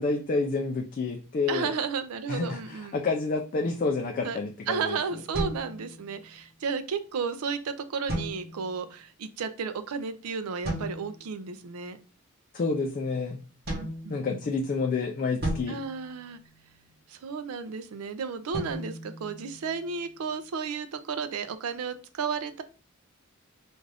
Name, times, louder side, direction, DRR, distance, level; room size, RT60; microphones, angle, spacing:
voice 1, 0.0-1.7 2.3-5.0 12.5-13.5 14.1-15.8, left 3 dB, 40° left, 2 dB, 0.3 m, -29 dB
voice 2, 1.5-3.0 4.2-4.4 4.7-12.0 13.8-14.4 15.7-16.4 17.1-22.6, right 5 dB, 85° right, 11 dB, 0.4 m, -33 dB
sound 1, 5.3-6.4 8.1-8.9 10.6-11.3 13.7-14.7 15.4-16.9 18.5-20.0, equal, 45° right, 1.0 m, -36 dB
2.5 x 2.4 x 3.2 m, 0.36 s
head